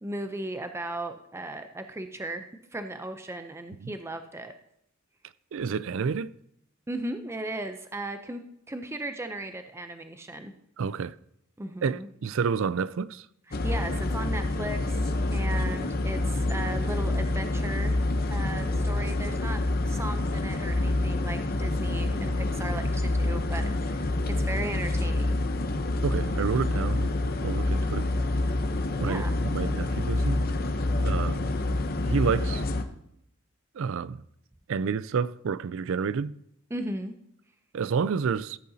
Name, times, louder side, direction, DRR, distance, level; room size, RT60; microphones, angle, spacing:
voice 1, 0.0-2.5 2.7-4.5 6.9-8.4 8.7-10.5 11.6-12.1 13.5-18.0 18.3-25.4 29.0-29.3 36.7-37.1, right 1 dB, 10° right, 0.5 m, -36 dB
voice 2, 5.5-6.3 10.8-11.2 11.8-13.2 26.0-27.1 27.4-28.1 29.0-30.4 31.0-31.5 32.0-32.6 33.8-34.2 34.7-36.4 37.7-38.6, right 6 dB, 65° right, 0.4 m, -29 dB
sound 1, 13.5-32.8, left 2 dB, 45° left, 0.7 m, -27 dB
14.0 x 8.4 x 2.8 m
head